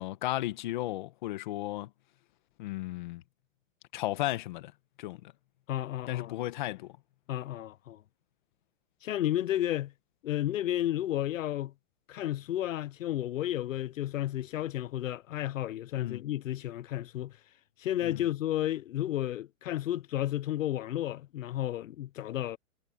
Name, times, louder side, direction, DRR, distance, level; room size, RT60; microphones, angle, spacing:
voice 1, 0.0-1.9 2.6-3.2 3.9-4.7 5.0-5.3 6.1-6.9 16.0-16.2 18.0-18.2, left 16 dB, 35° left, 1.3 m, -34 dB
voice 2, 5.7-6.4 7.3-8.0 9.0-9.9 10.2-11.7 12.1-17.4 17.8-22.6, left 13 dB, 75° left, 0.8 m, -32 dB
hypercardioid pair, 175°, 40 cm